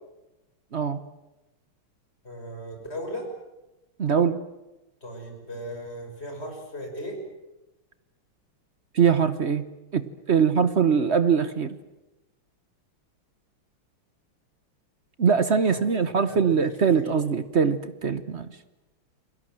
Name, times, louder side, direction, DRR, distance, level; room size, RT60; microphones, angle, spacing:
voice 1, 2.2-3.3 5.0-7.2 15.7-16.6 16.8-17.1, equal, 25° left, 3 dB, 6.4 m, -37 dB
voice 2, 4.0-4.4 8.9-9.6 9.9-11.8 15.2-18.5, right 6 dB, 45° right, 13 dB, 0.9 m, -22 dB
29.0 x 21.5 x 7.7 m, 1.0 s
omnidirectional pair, 2.4 m